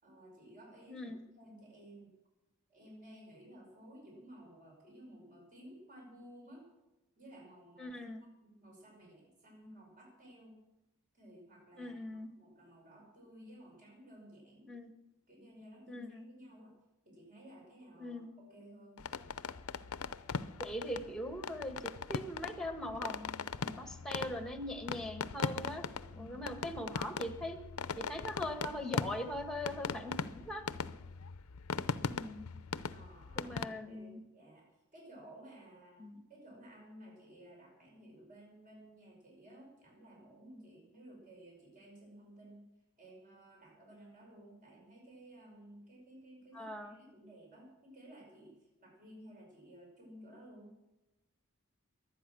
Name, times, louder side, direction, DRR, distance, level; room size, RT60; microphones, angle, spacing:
voice 1, 0.0-2.1 2.7-6.7 7.2-8.0 8.4-10.6 11.1-14.7 15.3-16.8 17.0-19.0 26.1-26.4 32.9-42.7 43.0-50.8, right 1 dB, 40° right, -1 dB, 5.5 m, -55 dB
voice 2, 7.8-8.2 11.8-12.3 14.7-14.9 15.9-16.3 18.0-18.3 20.6-25.8 26.2-27.6 28.0-30.6 32.0-32.5 33.3-34.2 36.0-36.2 46.5-47.0, left 1 dB, 5° left, 6 dB, 1.5 m, -41 dB
sound 1, 19.0-33.7, left 5 dB, 85° left, 0.6 m, -40 dB
22.5 x 8.7 x 6.2 m, 0.99 s
head